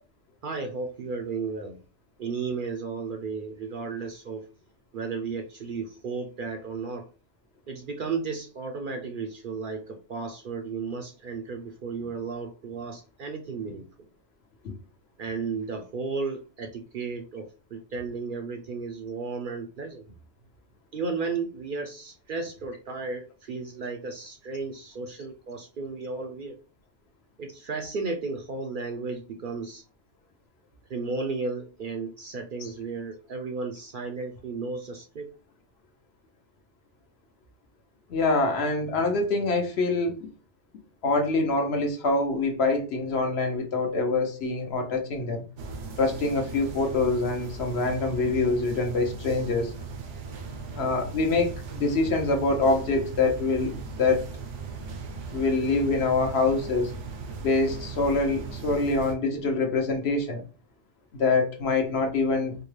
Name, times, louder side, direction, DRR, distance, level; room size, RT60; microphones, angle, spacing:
voice 1, 0.4-1.8 2.2-4.5 4.9-7.1 7.7-13.9 15.2-20.1 20.9-26.6 27.4-29.8 30.9-35.3, right 4 dB, 55° right, 0.6 m, -34 dB
voice 2, 38.1-40.2 41.0-45.4 46.0-49.7 50.7-54.3 55.3-56.9 57.4-60.4 61.1-62.6, left 3 dB, 65° left, 1.1 m, -25 dB
sound 1, 45.6-59.1, right 4 dB, 80° right, 1.1 m, -38 dB
4.6 x 2.2 x 3.2 m
omnidirectional pair, 1.2 m